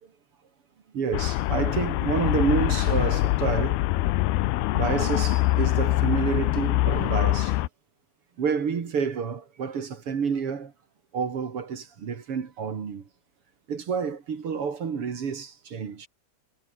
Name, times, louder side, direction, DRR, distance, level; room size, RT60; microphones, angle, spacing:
voice 1, 0.9-3.8 4.7-7.6 8.4-10.7 11.1-13.0 13.7-16.1, right 6 dB, 40° right, 2.5 m, -29 dB
Traffic noise roadway noise, 1.1-7.7, left 18 dB, 80° left, 2.6 m, -24 dB
omnidirectional pair, 4.8 m